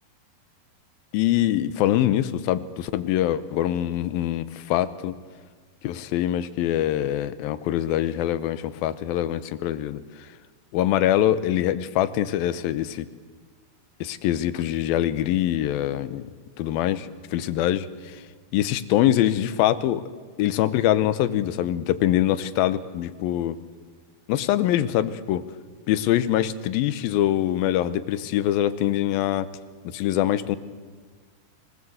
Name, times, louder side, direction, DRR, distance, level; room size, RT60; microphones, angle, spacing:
voice 1, 1.1-5.2 5.8-10.0 10.7-13.1 14.0-16.3 16.6-18.2 18.5-20.0 20.4-23.6 24.3-25.4 25.9-29.5 29.8-30.6, left 12 dB, 80° left, 14 dB, 2.6 m, -24 dB
24.0 x 19.0 x 7.9 m, 1.5 s
omnidirectional pair, 4.3 m